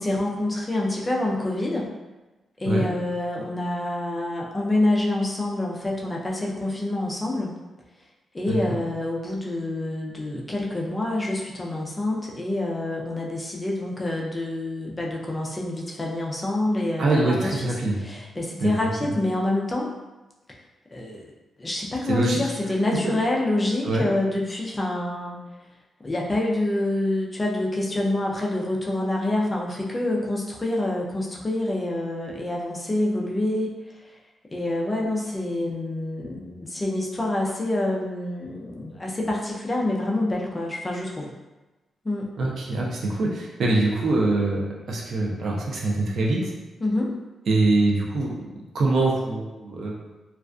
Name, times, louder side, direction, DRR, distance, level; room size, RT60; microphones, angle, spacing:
voice 1, 0.0-1.9 2.6-7.5 8.3-17.7 18.0-19.9 20.9-21.3 21.6-25.4 26.0-33.8 34.5-41.3 42.0-42.3 46.8-47.1, left 1 dB, 20° left, -2 dB, 0.3 m, -27 dB
voice 2, 8.5-8.8 17.0-18.0 18.6-18.7 19.1-19.2 22.0-22.4 23.0-23.1 23.8-24.0 42.4-46.5 47.5-48.4 48.7-50.0, right 2 dB, 60° right, -2 dB, 0.5 m, -24 dB
2.3 x 2.2 x 2.4 m, 1.1 s
wide cardioid pair, 140°, 0 cm